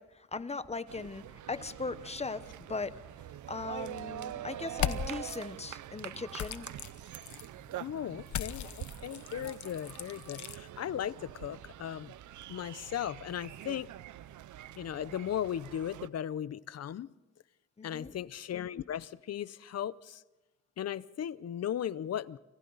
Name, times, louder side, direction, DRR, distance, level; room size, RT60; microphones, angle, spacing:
voice 1, 0.0-3.0 3.5-6.7 17.8-18.1, left 4 dB, 20° left, 13 dB, 0.9 m, -39 dB
sound 1, 0.9-16.1, right 12 dB, 80° right, 0.6 m, -45 dB
sound 2, 4.7-5.4 6.4-7.5 8.3-10.6, left 9 dB, 75° left, 1.1 m, -37 dB
voice 2, 7.8-12.1 12.5-13.9 14.8-17.1 17.8-20.2 20.8-22.4, left 10 dB, 60° left, 18 dB, 0.7 m, -37 dB
29.5 x 26.0 x 4.0 m, 1.2 s
cardioid pair, 115°, 29 cm